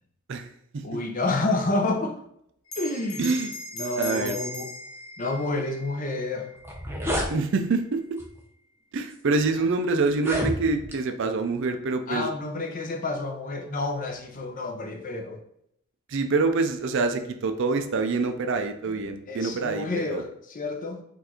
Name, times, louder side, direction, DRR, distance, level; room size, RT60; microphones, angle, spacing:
voice 1, 0.3-1.0 3.2-3.5 4.0-4.4 7.3-8.2 8.9-12.3 16.1-20.2, right 3 dB, 55° right, 7 dB, 0.4 m, -26 dB
voice 2, 0.8-2.1 2.8-3.3 3.7-4.7 5.2-6.5 12.1-15.4 18.9-21.0, left 2 dB, 35° left, 3 dB, 0.6 m, -29 dB
Bell, 2.7-7.5, left 2 dB, 60° left, 1.1 m, -39 dB
sound 1, 6.2-6.3 6.6-7.3 8.2-8.4 9.1-9.2 10.1-11.0, equal, 10° right, 0.6 m, -29 dB
4.5 x 2.5 x 4.3 m, 0.73 s
head